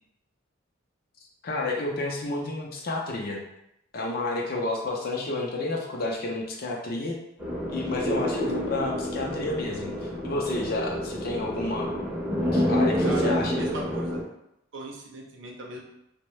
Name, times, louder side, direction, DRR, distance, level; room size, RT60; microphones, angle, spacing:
voice 1, 1.4-3.4 3.9-7.2 7.7-9.9 10.2-11.9 12.5-13.6, left 2 dB, 55° left, 0 dB, 0.5 m, -30 dB
sound 1, 7.4-14.2, equal, 5° right, 0.7 m, -28 dB
voice 2, 13.0-14.2 14.7-15.8, right 2 dB, 75° right, 0 dB, 0.6 m, -36 dB
2.6 x 2.1 x 3.1 m, 0.82 s
head